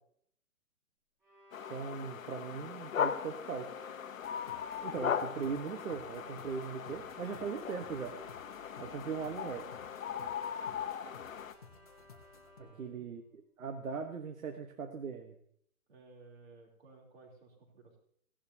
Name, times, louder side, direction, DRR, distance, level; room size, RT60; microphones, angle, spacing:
Bowed string instrument, 1.2-13.1, left 2 dB, 5° right, 4.0 m, -57 dB
sound 1, 1.5-11.5, left 8 dB, 65° left, 0.9 m, -39 dB
voice 1, 1.7-3.7 4.8-8.1 8.8-9.6 12.8-15.3, right 6 dB, 65° right, 5 dB, 1.3 m, -39 dB
sound 2, 4.2-12.6, left 5 dB, 25° left, 0.9 m, -58 dB
voice 2, 6.9-7.2 12.6-13.1 15.9-18.0, right 3 dB, 45° right, 1 dB, 3.4 m, -57 dB
16.5 x 11.5 x 2.8 m, 0.66 s
hypercardioid pair, 175°, 44 cm